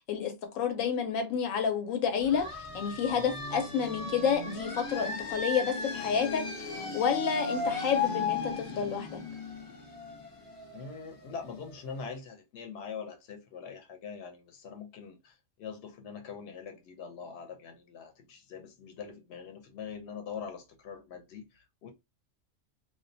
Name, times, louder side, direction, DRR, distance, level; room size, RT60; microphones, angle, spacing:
voice 1, 0.1-2.5 2.7-9.2, left 7 dB, 85° left, 1.0 m, -30 dB
sound 1, 2.2-11.7, left 4 dB, 35° left, 0.5 m, -36 dB
voice 2, 10.7-21.9, left 6 dB, 60° left, 0.8 m, -43 dB
2.3 x 2.2 x 2.5 m
omnidirectional pair, 1.3 m